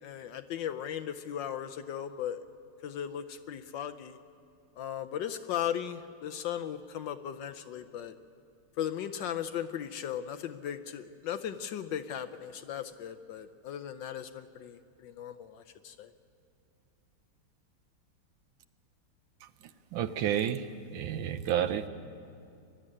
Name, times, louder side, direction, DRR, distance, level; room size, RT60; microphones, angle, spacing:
voice 1, 0.0-2.4 2.8-4.2 4.8-8.1 8.8-16.1, left 9 dB, 70° left, 8 dB, 1.2 m, -37 dB
voice 2, 19.9-20.6 20.9-21.8, right 10 dB, 70° right, 11 dB, 1.4 m, -30 dB
23.0 x 12.0 x 9.8 m, 2.5 s
omnidirectional pair, 2.3 m